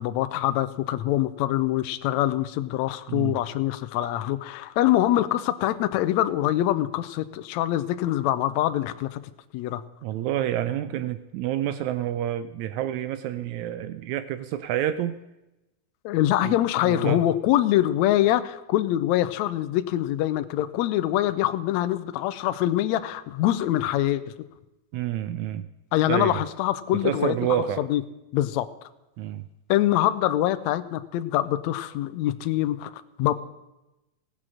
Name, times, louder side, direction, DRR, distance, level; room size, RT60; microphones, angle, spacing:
voice 1, 0.0-9.2 9.5-9.8 16.0-24.3 25.9-27.3 27.8-28.0 28.3-28.7 29.7-33.3, left 13 dB, 85° left, 11 dB, 1.6 m, -24 dB
voice 2, 10.0-15.2 16.4-16.5 16.8-17.2 24.9-25.7 26.0-26.4 27.0-27.8 29.2-29.5, right 11 dB, 80° right, 12 dB, 1.7 m, -28 dB
17.0 x 7.6 x 6.3 m, 0.98 s
omnidirectional pair, 3.8 m